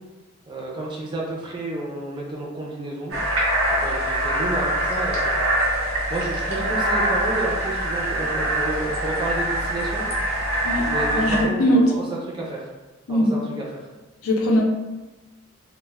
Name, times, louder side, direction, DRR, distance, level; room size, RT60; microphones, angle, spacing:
voice 1, 0.5-3.2 3.7-5.5 6.1-10.0 10.8-12.0 12.3-12.7 13.1-13.9, right 2 dB, 20° right, -4 dB, 0.4 m, -30 dB
sound 1, 3.1-11.4, right 1 dB, 85° right, 0.7 m, -24 dB
voice 2, 11.1-11.8 13.1-13.3 14.2-14.6, equal, 80° left, 0 dB, 0.5 m, -20 dB
2.1 x 2.1 x 3.3 m, 1.1 s
head